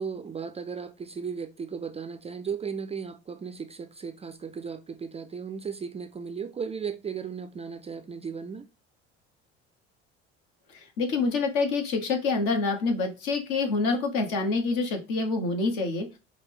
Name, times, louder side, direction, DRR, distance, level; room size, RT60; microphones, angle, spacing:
voice 1, 0.0-8.7, right 6 dB, 20° right, 0.4 m, -36 dB
voice 2, 10.7-16.1, left 3 dB, 65° left, 1.2 m, -27 dB
4.7 x 2.2 x 3.6 m
hypercardioid pair, 65°, 33 cm